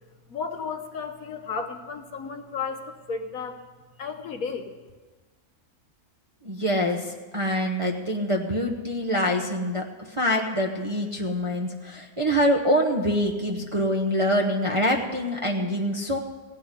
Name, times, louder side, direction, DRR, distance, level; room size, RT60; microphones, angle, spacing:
voice 1, 0.3-3.6 4.0-4.7, left 5 dB, 65° left, 6 dB, 1.4 m, -33 dB
voice 2, 6.4-9.8 10.2-16.2, equal, 25° right, 0 dB, 0.8 m, -25 dB
16.5 x 6.1 x 9.8 m, 1.3 s
omnidirectional pair, 1.6 m